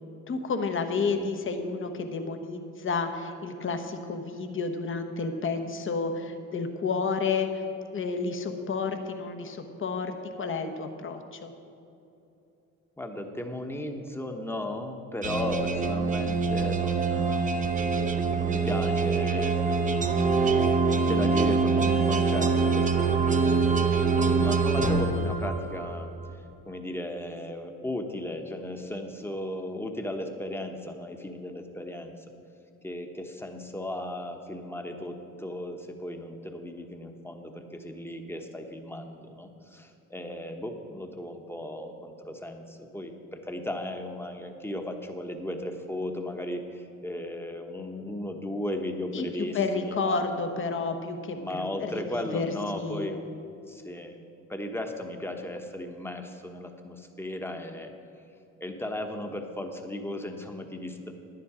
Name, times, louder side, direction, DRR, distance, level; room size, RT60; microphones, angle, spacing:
voice 1, 0.3-7.6 7.9-11.5 49.1-53.1, left 4 dB, 40° left, 6 dB, 1.1 m, -31 dB
voice 2, 13.0-17.5 18.3-20.3 20.9-23.8 24.1-26.1 26.7-32.2 32.8-50.2 51.3-53.2 53.7-54.2 54.5-57.9 58.6-61.1, left 1 dB, 10° left, 4 dB, 1.1 m, -36 dB
sound 1, 15.2-25.9, right 4 dB, 25° right, 0.7 m, -24 dB
10.5 x 10.5 x 5.0 m, 2.8 s
cardioid pair, 90°, 30 cm